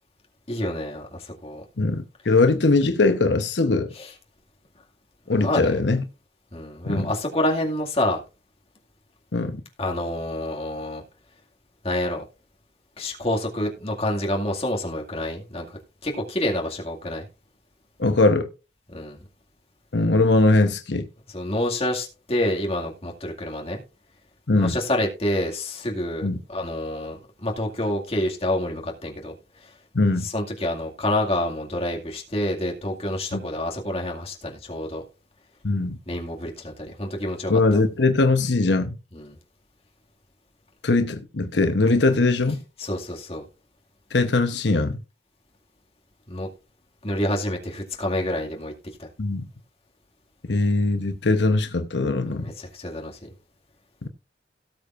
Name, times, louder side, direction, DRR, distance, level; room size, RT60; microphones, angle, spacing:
voice 1, 0.5-1.6 4.0-4.1 5.4-5.7 6.5-8.2 9.8-11.0 11.8-12.2 13.0-15.7 16.0-17.3 18.9-19.2 21.3-23.8 24.6-29.4 30.2-35.0 36.1-37.8 39.1-39.4 42.8-43.4 46.3-46.5 47.0-48.7 49.0-49.1 52.3-53.3, left 1 dB, 35° left, 2.2 m, -28 dB
voice 2, 1.8-3.9 5.3-6.0 6.8-7.1 9.3-9.6 18.0-18.5 19.9-21.1 24.5-24.8 26.2-26.4 29.9-30.3 33.3-33.4 35.6-36.0 37.5-39.0 40.8-42.6 44.1-45.0 49.2-49.4 50.5-52.4 54.0-54.1, left 3 dB, 80° left, 0.9 m, -21 dB
17.5 x 6.8 x 2.5 m
head